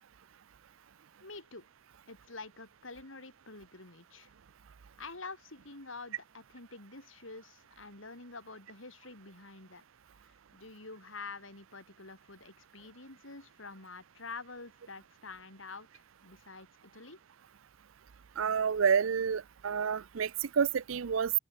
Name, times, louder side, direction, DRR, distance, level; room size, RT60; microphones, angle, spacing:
voice 1, 1.2-1.7 2.1-4.3 5.0-9.8 10.5-17.2, left 3 dB, 70° left, 5.2 m, -47 dB
voice 2, 18.4-21.3, right 6 dB, 80° right, 0.5 m, -29 dB
open air
head